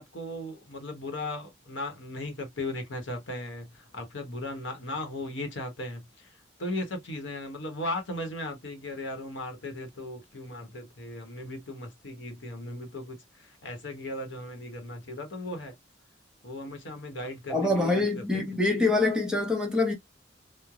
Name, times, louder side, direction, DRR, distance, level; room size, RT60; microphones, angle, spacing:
voice 1, 0.0-15.7 16.4-18.4, left 1 dB, 80° left, 1.0 m, -37 dB
voice 2, 17.5-19.9, left 2 dB, 5° right, 0.7 m, -25 dB
3.1 x 2.1 x 2.3 m
head